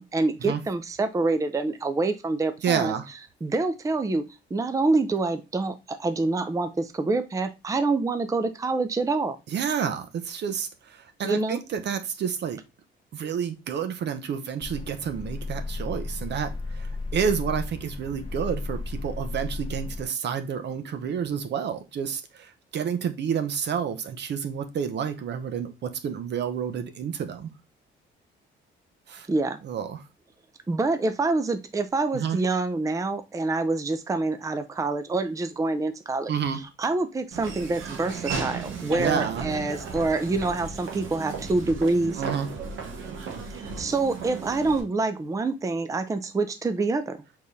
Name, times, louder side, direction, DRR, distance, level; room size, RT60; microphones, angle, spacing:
voice 1, 0.0-2.9 3.4-4.2 4.5-9.4 11.2-11.6 29.3-29.6 30.7-42.2 43.5-47.2, right 3 dB, 15° right, 9 dB, 0.5 m, -26 dB
voice 2, 2.6-3.1 9.5-12.6 13.1-27.5 29.1-29.3 29.6-30.0 32.1-32.4 36.3-36.6 39.0-39.5 42.2-42.5, right 7 dB, 60° right, 9 dB, 0.8 m, -29 dB
sound 1, 14.6-20.0, left 3 dB, 25° left, 1.1 m, -34 dB
Laughter / Walk footsteps, 37.3-44.8, right 5 dB, 75° right, 1.2 m, -35 dB
4.7 x 3.8 x 2.6 m, 0.25 s
cardioid pair, 90°, 20 cm